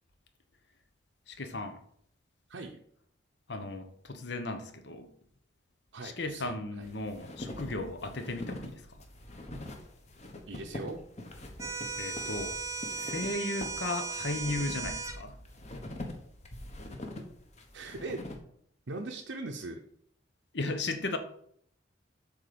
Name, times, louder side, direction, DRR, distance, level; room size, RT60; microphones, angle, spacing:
voice 1, 1.3-1.8 3.5-5.1 6.0-9.0 12.0-12.6 13.0-15.4 20.5-21.2, left 2 dB, 60° left, 8 dB, 1.0 m, -36 dB
voice 2, 5.9-6.9 10.5-11.0 17.7-18.2 18.9-19.8, right 2 dB, 75° right, 1 dB, 0.8 m, -40 dB
sound 1, 6.8-18.4, left 1 dB, 35° left, 1.3 m, -44 dB
sound 2, 11.6-15.2, right 4 dB, 15° right, 0.5 m, -37 dB
8.2 x 3.9 x 6.9 m, 0.67 s
head